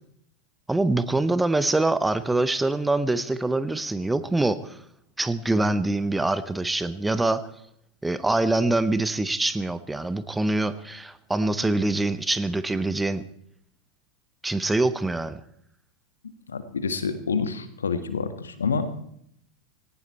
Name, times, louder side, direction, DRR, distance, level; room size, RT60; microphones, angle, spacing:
voice 1, 0.7-4.8 5.2-7.4 8.0-13.2 14.4-15.4, right 2 dB, 10° right, 14 dB, 1.0 m, -24 dB
voice 2, 16.5-18.9, left 5 dB, 75° left, 11 dB, 1.7 m, -28 dB
18.0 x 17.5 x 4.3 m, 0.70 s
figure-of-eight pair, 85°, 0 cm